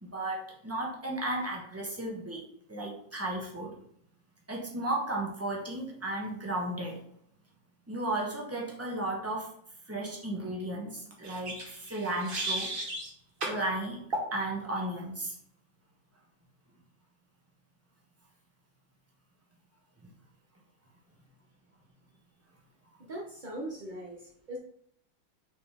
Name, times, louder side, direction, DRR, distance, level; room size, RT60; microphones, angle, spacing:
voice 1, 0.0-2.4 2.7-3.7 4.5-7.0 7.9-9.5 9.9-11.5 11.9-12.7 13.4-14.0 14.3-15.3 20.0-20.1, right 1 dB, 10° right, -2 dB, 0.9 m, -34 dB
sound 1, 11.2-13.1 13.4-13.6 14.1-14.3, right 2 dB, 35° right, 1.0 m, -35 dB
voice 2, 23.1-24.6, right 1 dB, 75° right, -3 dB, 0.4 m, -40 dB
6.7 x 4.2 x 3.4 m, 0.66 s
omnidirectional pair, 2.4 m